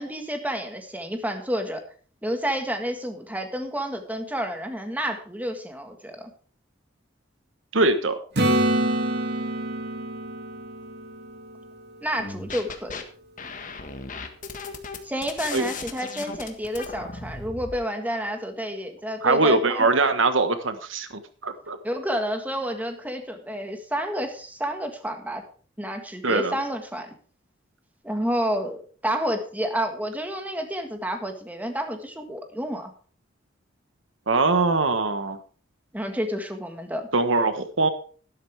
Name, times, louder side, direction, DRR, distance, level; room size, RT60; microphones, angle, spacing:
voice 1, 0.0-1.8 2.2-6.3 12.0-13.0 15.0-19.9 21.8-25.4 25.8-27.1 28.0-32.9 35.9-37.1, equal, 10° right, 5 dB, 1.7 m, -30 dB
voice 2, 7.7-8.2 15.5-15.6 19.2-21.1 21.4-21.8 26.2-26.5 34.3-35.4 37.1-37.9, right 3 dB, 85° right, 9 dB, 1.3 m, -22 dB
Acoustic guitar / Strum, 8.3-12.1 17.0-17.1, right 1 dB, 60° right, 2.4 m, -27 dB
sound 1, 12.2-13.0 13.4-17.8, left 4 dB, 45° left, 1.6 m, -37 dB
13.0 x 12.0 x 3.5 m, 0.42 s
head